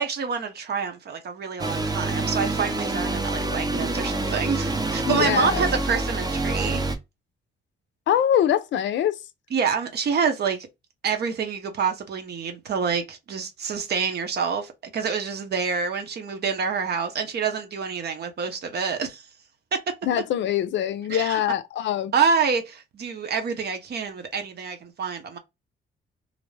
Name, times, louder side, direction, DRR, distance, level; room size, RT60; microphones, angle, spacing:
voice 1, 0.0-6.8 9.5-10.7 11.0-19.3 19.7-19.9 21.1-21.4 22.1-25.4, right 6 dB, 55° right, 0.8 m, -27 dB
sound 1, 1.6-7.0, right 2 dB, 20° right, 0.6 m, -27 dB
voice 2, 5.1-5.6 8.1-9.2 20.0-22.1, left 10 dB, 65° left, 0.5 m, -23 dB
2.6 x 2.1 x 3.2 m
cardioid pair, 90°, 20 cm